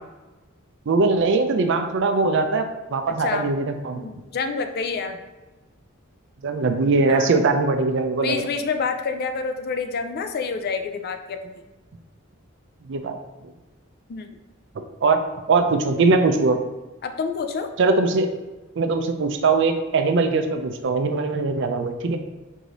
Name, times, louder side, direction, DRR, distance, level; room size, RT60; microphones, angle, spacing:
voice 1, 0.9-4.1 6.4-8.4 12.8-13.5 15.0-15.2 15.5-16.6 17.8-18.3 18.8-22.2, right 3 dB, 60° right, 7 dB, 0.4 m, -21 dB
voice 2, 3.2-3.5 4.0-5.2 7.1-7.3 8.2-11.6 14.1-14.4 17.0-17.7, left 5 dB, 50° left, 7 dB, 0.4 m, -28 dB
4.8 x 2.7 x 3.9 m, 1.1 s
head